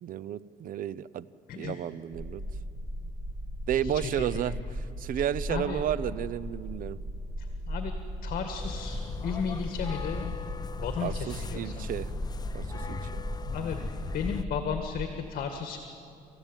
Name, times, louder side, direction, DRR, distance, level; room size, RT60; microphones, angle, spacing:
voice 1, 0.0-1.3 1.5-2.4 3.7-7.0 11.0-12.1 12.5-13.2, right 10 dB, 55° right, 18 dB, 0.7 m, -32 dB
voice 2, 1.5-1.9 3.8-4.6 5.5-5.8 7.4-7.9 8.2-10.3 10.8-11.9 13.5-13.8 14.1-15.8, left 7 dB, 60° left, 5 dB, 1.9 m, -34 dB
sound 1, 2.1-15.1, equal, 10° right, 1.4 m, -37 dB
sound 2, 8.6-14.4, left 5 dB, 25° left, 0.7 m, -38 dB
28.0 x 15.0 x 9.1 m, 2.6 s
cardioid pair, 110°, 17 cm